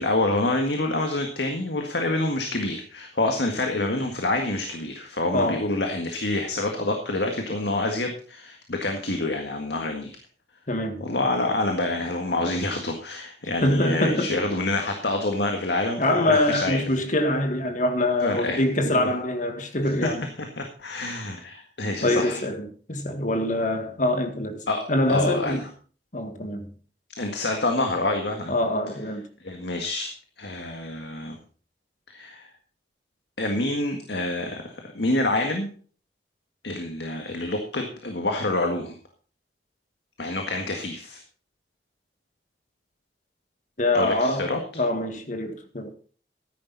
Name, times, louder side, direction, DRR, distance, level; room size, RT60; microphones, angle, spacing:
voice 1, 0.0-10.2 11.0-16.9 18.2-18.6 18.9-19.1 20.0-20.1 20.4-22.4 24.7-24.8 25.1-25.7 27.2-28.5 29.4-30.1 30.4-31.4 32.1-32.5 33.4-35.7 36.6-38.9 40.2-41.2 43.9-44.6, left 2 dB, 75° left, 1.8 m, -27 dB
voice 2, 10.7-11.1 13.6-14.4 16.0-20.3 22.0-24.6 24.9-25.7 26.1-26.7 28.5-29.2 43.8-45.9, left 1 dB, 45° left, 1.8 m, -24 dB
14.0 x 10.5 x 4.1 m
head